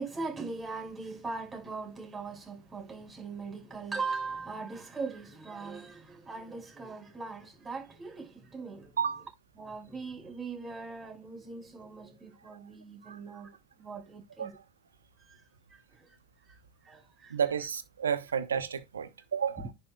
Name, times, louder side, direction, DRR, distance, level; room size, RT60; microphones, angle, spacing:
voice 1, 0.0-9.0 9.6-14.6 15.2-15.4 15.7-16.2 16.5-17.4 19.6-19.7, right 4 dB, 25° right, 5.5 m, -40 dB
voice 2, 17.3-19.7, right 7 dB, 85° right, 1.0 m, -31 dB
10.5 x 6.8 x 2.3 m
hypercardioid pair, 80°, 0 cm